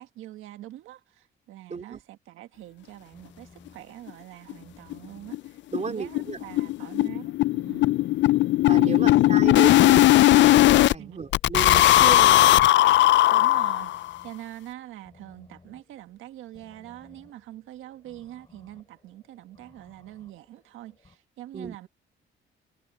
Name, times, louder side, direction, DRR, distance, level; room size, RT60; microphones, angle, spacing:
voice 1, 0.0-7.9 8.7-9.2 11.0-11.3 13.3-21.9, right 14 dB, 90° right, 1.6 m, -44 dB
voice 2, 1.7-2.0 5.7-6.4 8.6-12.6 21.5-21.9, right 5 dB, 35° right, 2.9 m, -34 dB
sound 1, 3.1-21.2, left 3 dB, 25° left, 6.2 m, -58 dB
sound 2, 4.1-4.2 4.5-4.6 4.9-5.0 5.3-5.5 5.7-10.9 11.3-14.1, left 15 dB, 65° left, 0.4 m, -18 dB
cardioid pair, 90°, 20 cm